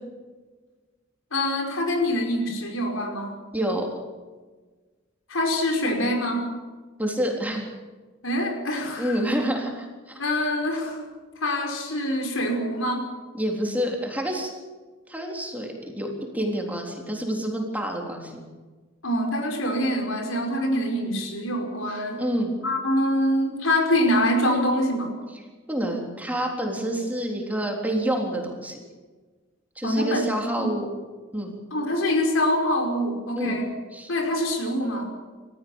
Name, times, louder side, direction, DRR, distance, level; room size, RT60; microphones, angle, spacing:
voice 1, 1.3-3.4 5.3-6.5 8.2-9.2 10.2-11.0 11.4-13.1 19.0-22.2 22.6-25.1 29.8-30.2 30.6-30.7 31.7-33.7 34.1-35.1, left 1 dB, 75° left, 3 dB, 5.2 m, -25 dB
voice 2, 3.5-4.0 7.0-7.7 9.0-10.2 13.3-14.5 15.1-18.5 22.2-22.5 25.7-28.8 29.8-30.9 31.3-31.5 33.4-33.6 33.9-34.1, right 1 dB, 10° right, 1 dB, 3.7 m, -28 dB
29.5 x 15.0 x 7.2 m, 1.4 s
head